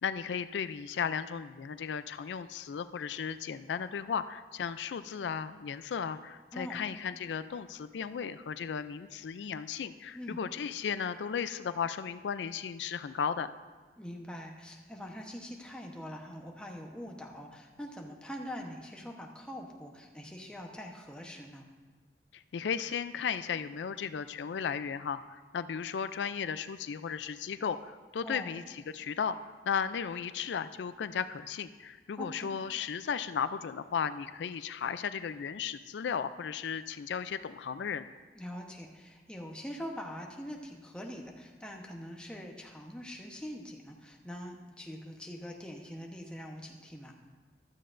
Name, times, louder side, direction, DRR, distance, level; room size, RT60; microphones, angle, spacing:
voice 1, 0.0-13.5 22.3-38.1, left 7 dB, 85° left, 12 dB, 0.4 m, -35 dB
voice 2, 14.0-21.7 28.2-28.5 32.2-32.5 38.3-47.1, equal, 5° left, 0 dB, 0.9 m, -43 dB
15.0 x 12.5 x 2.6 m, 1.4 s
head